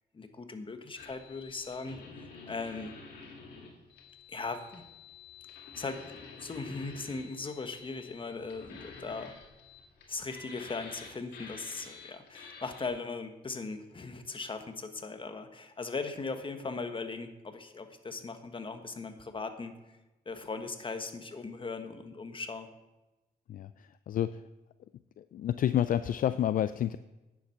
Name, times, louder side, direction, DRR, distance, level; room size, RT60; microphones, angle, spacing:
voice 1, 0.1-2.9 4.3-4.9 5.8-6.0 6.4-9.3 10.1-20.0 20.2-22.7, left 4 dB, 30° left, 7 dB, 1.3 m, -39 dB
sound 1, 1.0-12.9, left 5 dB, 80° left, 2.2 m, -50 dB
voice 2, 23.5-24.4 25.2-27.0, left 10 dB, 55° left, 13 dB, 0.4 m, -29 dB
9.6 x 7.4 x 5.8 m, 1.0 s
cardioid pair, 80°, 17 cm